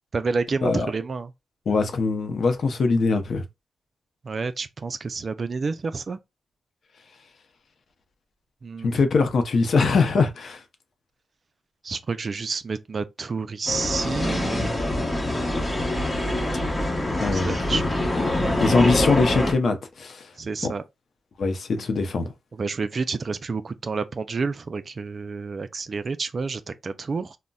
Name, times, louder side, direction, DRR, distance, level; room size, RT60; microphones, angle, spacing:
voice 1, 0.1-1.3 4.2-6.2 8.6-8.9 11.8-14.8 17.3-17.8 20.4-20.8 22.5-27.4, right 4 dB, 45° right, 0.3 m, -29 dB
voice 2, 1.7-3.4 8.8-10.6 17.2-17.8 18.2-20.3 20.6-20.7 21.4-22.3, left 4 dB, 65° left, 0.6 m, -22 dB
sound 1, 13.7-19.5, left 1 dB, 25° left, 0.9 m, -25 dB
3.8 x 2.1 x 2.3 m
cardioid pair, 85°, 0 cm